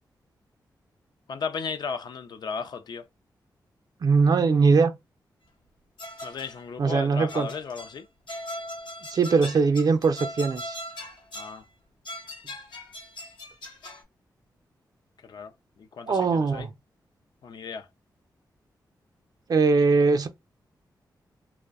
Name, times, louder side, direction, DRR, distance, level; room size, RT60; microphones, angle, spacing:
voice 1, 1.3-3.1 6.2-8.1 11.3-11.7 15.2-16.7 17.4-17.9, left 5 dB, 65° left, 0.4 m, -35 dB
voice 2, 4.0-4.9 6.8-7.5 9.1-10.8 16.0-16.7 19.5-20.3, right 4 dB, 55° right, 0.5 m, -21 dB
sound 1, 6.0-6.6 7.3-8.0 8.3-11.6 12.0-14.0, left 1 dB, 85° left, 0.8 m, -40 dB
2.5 x 2.1 x 2.3 m
cardioid pair, 65°, 8 cm